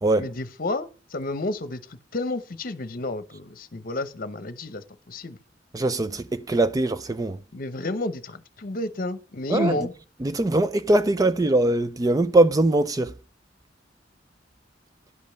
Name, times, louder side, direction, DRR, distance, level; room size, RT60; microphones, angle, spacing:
voice 1, 0.2-1.8 2.1-5.4 7.5-9.9, left 2 dB, 50° left, 0.9 m, -31 dB
voice 2, 5.7-7.4 9.5-9.8 10.2-13.1, right 2 dB, 20° right, 0.4 m, -21 dB
11.0 x 5.3 x 6.5 m
head